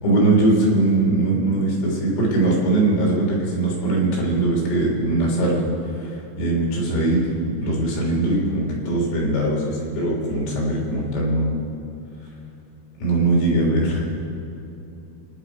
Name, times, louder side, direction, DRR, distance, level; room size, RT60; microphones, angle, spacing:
voice 1, 0.0-11.6 13.0-14.1, right 2 dB, 80° left, -3 dB, 6.0 m, -21 dB
27.5 x 10.5 x 4.6 m, 2.8 s
omnidirectional pair, 5.8 m